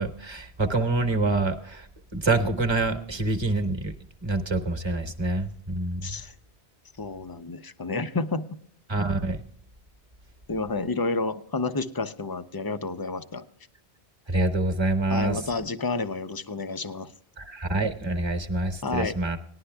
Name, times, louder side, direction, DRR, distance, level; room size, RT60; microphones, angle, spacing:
voice 1, 0.0-3.9 4.2-6.1 8.9-9.4 14.3-15.4 17.4-19.4, right 2 dB, 25° right, 6 dB, 1.1 m, -26 dB
voice 2, 6.0-6.3 7.0-8.5 10.5-13.4 15.1-17.1 18.8-19.2, left 3 dB, 35° left, 11 dB, 0.4 m, -30 dB
19.0 x 11.5 x 2.2 m, 0.65 s
omnidirectional pair, 1.1 m